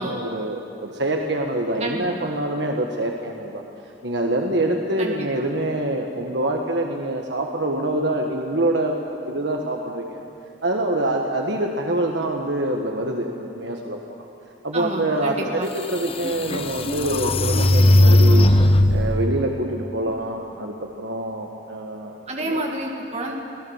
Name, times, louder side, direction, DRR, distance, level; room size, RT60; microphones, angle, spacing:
voice 1, 0.0-3.6 4.0-10.2 10.6-14.2 14.6-18.5 18.9-22.1, right 1 dB, 75° right, 2 dB, 1.4 m, -25 dB
voice 2, 1.8-2.3 5.0-5.5 14.7-15.7 22.3-23.3, right 1 dB, 35° right, 0 dB, 2.0 m, -30 dB
sound 1, 15.4-15.5 16.1-19.2, left 1 dB, 30° left, 1.0 m, -17 dB
25.0 x 17.5 x 7.3 m, 2.6 s
head